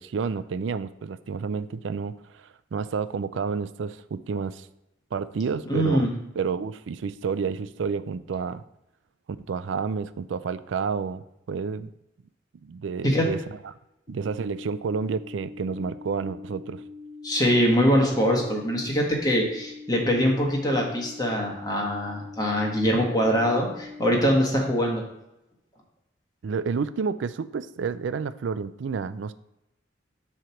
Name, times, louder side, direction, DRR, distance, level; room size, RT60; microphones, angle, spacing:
voice 1, 0.0-4.7 5.1-8.6 9.5-11.9 12.6-13.4 14.1-16.8 26.4-29.3, right 5 dB, 85° right, 14 dB, 0.4 m, -30 dB
voice 2, 5.6-6.1 13.0-13.3 17.2-25.0, equal, 20° left, -1 dB, 1.4 m, -23 dB
sound 1, 14.1-24.1, left 4 dB, 30° right, 2.8 m, -43 dB
7.6 x 3.3 x 5.8 m, 0.87 s
head